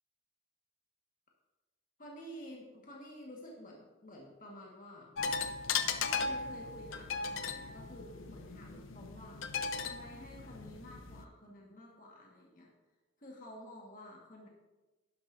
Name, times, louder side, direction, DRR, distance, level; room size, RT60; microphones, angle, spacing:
voice 1, 2.0-5.1 6.1-9.5 9.8-12.7 13.2-14.5, equal, 40° left, -2 dB, 1.6 m, -51 dB
sound 1, 5.2-11.2, left 5 dB, 75° left, 0.6 m, -37 dB
11.5 x 11.0 x 2.7 m, 1.1 s
head